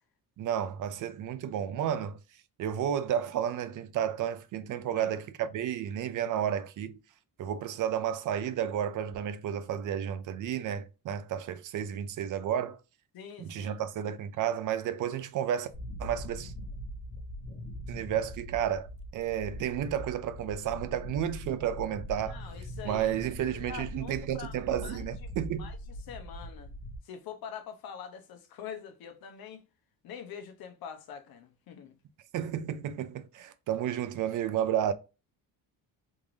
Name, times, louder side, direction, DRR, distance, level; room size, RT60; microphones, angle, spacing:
voice 1, 0.4-2.2 2.6-7.0 7.4-12.8 13.4-15.7 16.0-16.5 17.9-22.4 22.8-25.7 32.3-34.9, right 10 dB, 60° right, 0.5 m, -32 dB
voice 2, 13.1-13.8 22.3-23.2 23.6-25.8 26.1-26.7 27.0-29.6 30.0-31.9, left 7 dB, 75° left, 0.8 m, -45 dB
sound 1, 15.7-27.0, equal, 15° left, 1.4 m, -42 dB
3.6 x 2.5 x 3.1 m
cardioid pair, 160°, 36 cm